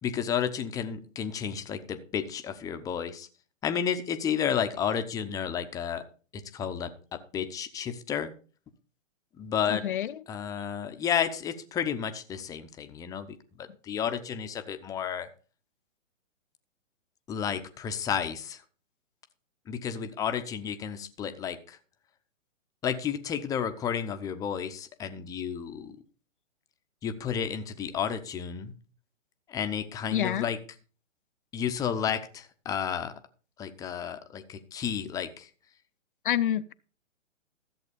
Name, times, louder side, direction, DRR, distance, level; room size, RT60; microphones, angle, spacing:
voice 1, 0.0-3.3 3.6-6.0 6.3-8.3 9.4-9.9 10.3-15.3 17.3-18.6 19.7-21.8 22.8-26.0 27.0-28.7 29.5-30.6 31.5-33.1 33.6-35.5, left 8 dB, 10° left, 0.7 m, -32 dB
voice 2, 9.7-10.1 30.1-30.5 36.2-36.7, left 11 dB, 45° left, 0.6 m, -27 dB
14.0 x 7.8 x 5.2 m
hypercardioid pair, 135°, 38 cm